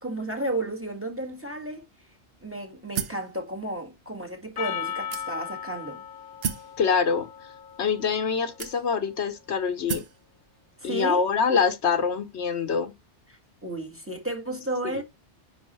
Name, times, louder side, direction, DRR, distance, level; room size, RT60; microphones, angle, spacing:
voice 1, 0.0-1.9 2.4-6.0 10.8-11.2 13.6-15.0, right 1 dB, 10° right, 1.8 m, -33 dB
sound 1, 3.0-3.3 4.1-4.2 5.1-5.6 6.4-6.7 7.7-7.8 8.6-9.1 9.9-10.2, right 6 dB, 60° right, 1.1 m, -32 dB
Percussion, 4.6-9.1, left 9 dB, 55° left, 0.8 m, -37 dB
voice 2, 6.8-7.3 7.8-10.0 10.8-12.9, left 6 dB, 75° left, 1.2 m, -25 dB
9.9 x 3.9 x 3.1 m
omnidirectional pair, 1.2 m